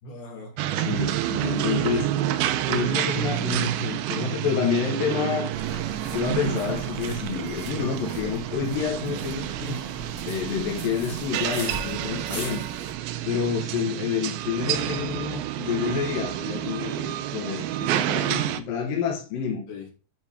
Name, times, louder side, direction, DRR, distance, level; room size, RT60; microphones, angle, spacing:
voice 1, 0.0-0.5 1.4-1.9 12.0-12.5 19.7-19.9, left 3 dB, 90° left, -1 dB, 4.5 m, -40 dB
sound 1, 0.6-18.6, right 12 dB, 90° right, 2.5 m, -29 dB
voice 2, 0.7-2.4 2.7-5.8 6.1-9.8 10.3-12.6 13.2-19.6, left 7 dB, 70° left, 0 dB, 2.9 m, -29 dB
sound 2, 5.5-12.9, right 1 dB, 30° right, 0.7 m, -40 dB
10.5 x 4.5 x 3.5 m, 0.34 s
omnidirectional pair, 4.2 m